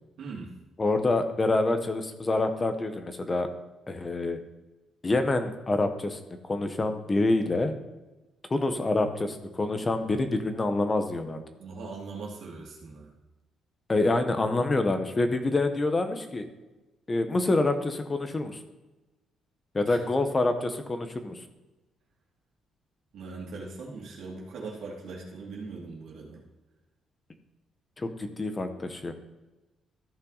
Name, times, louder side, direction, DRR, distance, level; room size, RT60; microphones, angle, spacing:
voice 1, 0.2-0.5 11.6-13.1 19.9-20.0 23.1-26.4, right 4 dB, 70° right, -3 dB, 2.3 m, -40 dB
voice 2, 0.8-3.5 3.9-4.4 5.0-7.7 8.5-11.4 13.9-16.5 17.1-18.6 19.7-21.4 28.0-29.1, left 2 dB, 25° left, 8 dB, 1.2 m, -27 dB
14.0 x 5.6 x 4.1 m, 1.1 s
cardioid pair, 90°, 0 cm